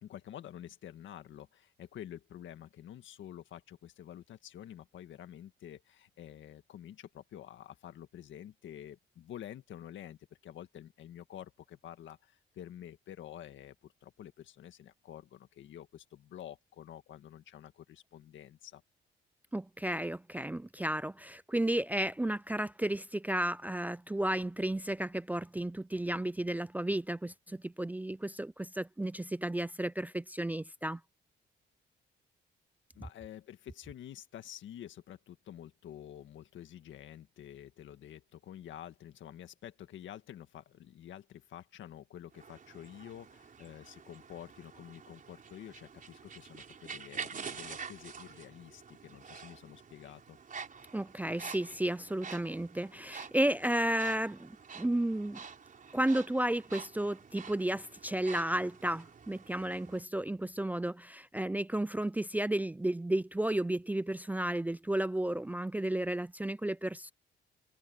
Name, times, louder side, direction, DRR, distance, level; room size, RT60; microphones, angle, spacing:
voice 1, 0.0-18.8 32.9-50.4, left 11 dB, 75° left, 1.8 m, -49 dB
voice 2, 19.5-31.0 50.9-55.4 55.9-67.1, right 1 dB, 10° right, 0.4 m, -33 dB
sound 1, 42.3-60.0, right 6 dB, 40° right, 4.9 m, -48 dB
cardioid pair, 90°, 20 cm